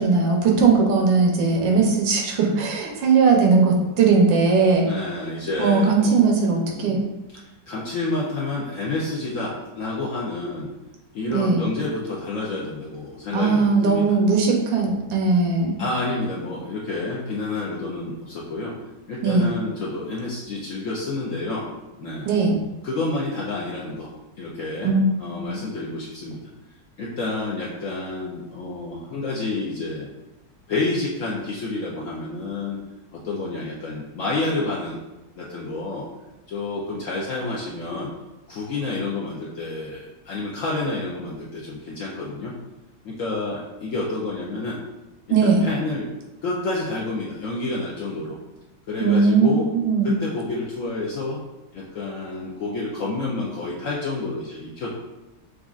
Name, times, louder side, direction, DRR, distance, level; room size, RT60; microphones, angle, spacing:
voice 1, 0.0-4.9 5.6-7.0 11.3-11.6 13.3-15.8 19.2-19.5 22.3-22.5 24.8-25.1 25.4-25.6 45.3-45.6 49.0-50.1, right 4 dB, 90° right, 1 dB, 1.5 m, -19 dB
voice 2, 1.6-1.9 4.8-6.2 6.7-7.0 7.7-10.7 11.1-14.2 15.8-18.7 19.1-21.6 22.0-22.3 22.8-24.1 24.4-24.9 25.2-26.5 27.0-30.1 30.7-32.8 33.1-35.0 35.4-36.1 36.5-38.1 38.5-42.5 43.0-44.8 45.4-46.1 46.4-48.4 48.9-49.6 50.0-51.4 51.7-54.9, left 2 dB, 70° left, -5 dB, 0.7 m, -29 dB
6.2 x 2.3 x 2.4 m, 1.0 s
omnidirectional pair, 2.0 m